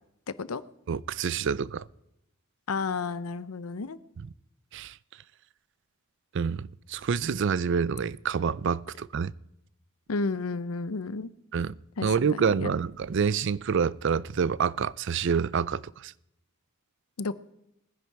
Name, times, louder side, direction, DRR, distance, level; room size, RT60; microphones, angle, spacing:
voice 1, 0.9-1.9 4.7-5.0 6.3-9.3 11.5-11.7 12.0-16.1, right 6 dB, 55° right, 0.4 m, -27 dB
voice 2, 2.7-4.0 10.1-11.3 12.0-12.7 17.2-17.4, left 4 dB, 80° left, 0.7 m, -32 dB
20.0 x 10.5 x 4.7 m
head